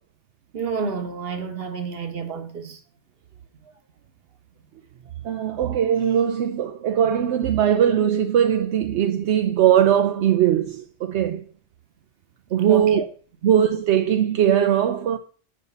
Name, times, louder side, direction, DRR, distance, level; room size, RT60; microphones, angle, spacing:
voice 1, 0.5-2.8 12.7-13.1, right 5 dB, 60° right, 1.3 m, -29 dB
voice 2, 5.2-11.4 12.5-13.0 13.4-15.2, right 9 dB, 80° right, 0.9 m, -20 dB
6.9 x 4.9 x 6.8 m
omnidirectional pair, 1.2 m